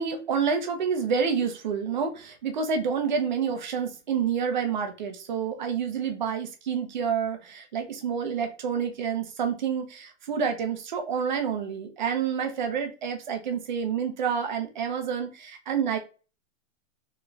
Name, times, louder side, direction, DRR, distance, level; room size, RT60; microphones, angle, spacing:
voice 1, 0.0-16.0, right 6 dB, 35° right, 5 dB, 0.6 m, -28 dB
4.0 x 3.1 x 2.3 m, 0.34 s
hypercardioid pair, 170°, 39 cm